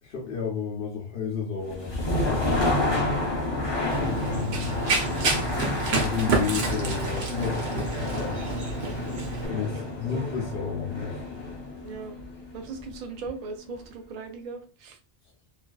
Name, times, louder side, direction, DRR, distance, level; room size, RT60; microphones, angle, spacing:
voice 1, 0.0-3.3 3.9-4.9 5.9-8.4 9.5-11.2, left 6 dB, 75° left, 0.9 m, -32 dB
sound 1, 1.6-13.5, left 1 dB, 30° left, 0.6 m, -30 dB
Run, 3.9-9.5, right 3 dB, 85° right, 0.9 m, -29 dB
voice 2, 9.5-10.3 11.8-12.2 12.5-15.0, right 4 dB, 55° right, 0.5 m, -39 dB
2.4 x 2.3 x 2.2 m
omnidirectional pair, 1.0 m